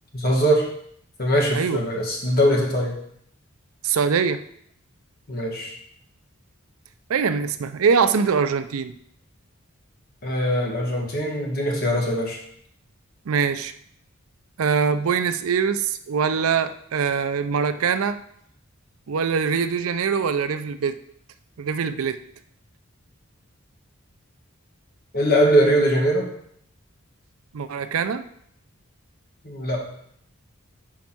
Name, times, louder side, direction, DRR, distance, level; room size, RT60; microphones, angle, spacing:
voice 1, 0.1-0.7 1.2-3.0 5.3-5.7 10.2-12.4 25.1-26.3 29.4-29.8, equal, 45° left, -1 dB, 1.7 m, -21 dB
voice 2, 3.8-4.4 7.1-8.9 13.3-13.7 14.6-18.2 19.1-21.0 21.6-22.2 27.5-28.2, right 6 dB, 85° right, 11 dB, 0.5 m, -23 dB
5.2 x 4.7 x 6.0 m, 0.69 s
head